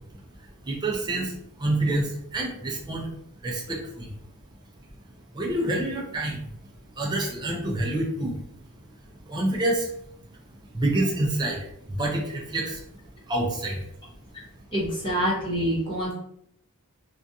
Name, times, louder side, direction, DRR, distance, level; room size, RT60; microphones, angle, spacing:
voice 1, 0.1-3.1 3.4-4.1 5.3-6.5 6.9-8.4 9.3-9.9 10.7-12.8 13.2-13.9, right 1 dB, 20° right, -1 dB, 0.4 m, -28 dB
voice 2, 14.7-16.1, equal, 20° left, -5 dB, 0.8 m, -26 dB
2.4 x 2.3 x 2.6 m, 0.72 s
head